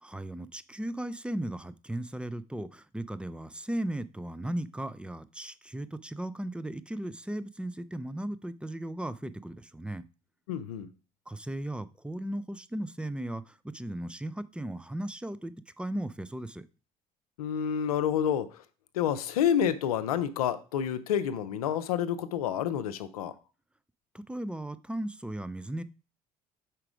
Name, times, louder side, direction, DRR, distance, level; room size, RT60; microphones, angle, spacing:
voice 1, 0.0-10.0 11.3-16.7 24.1-25.8, right 1 dB, 5° right, 15 dB, 0.5 m, -36 dB
voice 2, 10.5-10.9 17.4-18.6 18.9-23.3, left 9 dB, 85° left, 13 dB, 0.5 m, -29 dB
4.8 x 4.5 x 4.9 m, 0.35 s
hypercardioid pair, 55°, 19 cm